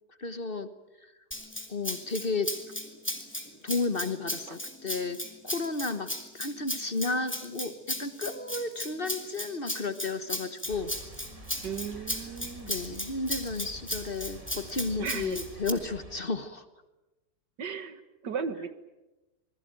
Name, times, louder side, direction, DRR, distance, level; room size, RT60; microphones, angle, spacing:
voice 1, 0.2-0.7 1.7-2.6 3.6-10.9 12.6-16.6, left 3 dB, 35° left, 10 dB, 1.3 m, -33 dB
Rattle (instrument), 1.3-15.7, left 1 dB, 5° left, 2.5 m, -36 dB
sound 1, 10.7-16.2, right 1 dB, 20° right, 2.5 m, -47 dB
voice 2, 11.6-12.8 15.0-15.4 17.6-18.7, right 6 dB, 85° right, 11 dB, 2.2 m, -36 dB
27.5 x 21.0 x 9.0 m, 1.1 s
omnidirectional pair, 1.8 m